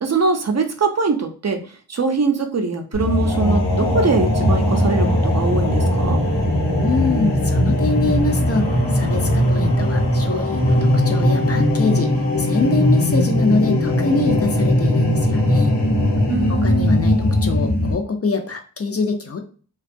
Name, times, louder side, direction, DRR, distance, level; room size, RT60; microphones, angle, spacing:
voice 1, 0.0-1.6 1.9-6.2 16.3-17.0, right 4 dB, 40° right, 4 dB, 0.4 m, -22 dB
sound 1, 2.9-17.9, left 1 dB, 85° left, 0.8 m, -19 dB
voice 2, 6.8-8.7 8.9-12.1 12.4-15.7 16.5-19.4, left 4 dB, 35° left, 5 dB, 0.4 m, -24 dB
2.6 x 2.2 x 2.5 m, 0.40 s
wide cardioid pair, 60°, 40 cm